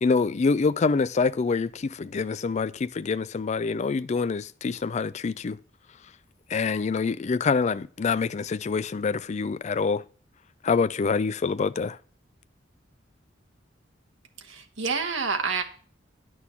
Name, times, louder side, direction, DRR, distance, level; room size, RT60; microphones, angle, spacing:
voice 1, 0.0-5.6 6.5-10.0 10.6-12.0, left 4 dB, 35° left, 0.4 m, -26 dB
voice 2, 14.4-15.6, right 5 dB, 85° right, 1.3 m, -28 dB
10.0 x 6.2 x 5.7 m
head